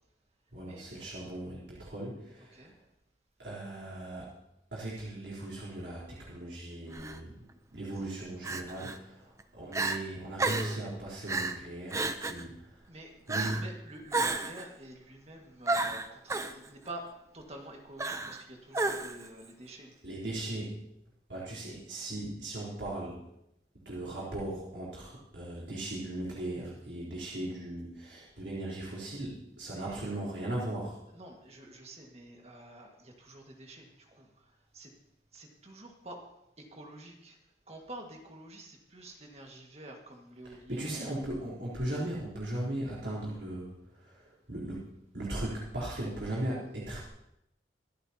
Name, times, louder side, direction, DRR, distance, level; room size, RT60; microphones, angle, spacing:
voice 1, 0.5-2.7 3.4-4.3 4.7-7.3 7.7-12.8 13.3-13.6 20.0-20.8 21.3-23.2 23.9-31.0 40.4-47.1, right 1 dB, 80° right, -8 dB, 3.8 m, -38 dB
voice 2, 2.4-2.7 12.9-19.9 29.7-30.0 31.1-34.3 34.7-34.9 35.3-36.2 36.6-37.4 37.7-41.2, right 1 dB, 35° right, 2 dB, 1.8 m, -48 dB
Crying sobbing, 6.9-7.2 8.4-9.0 9.4-9.5 9.7-10.0 10.4-10.8 11.3-11.6 11.9-12.4 13.3-13.7 14.1-14.6 15.7-16.5 18.0-18.4 18.7-19.3, right 3 dB, 15° right, 0.6 m, -31 dB
25.5 x 8.8 x 2.9 m, 0.84 s
head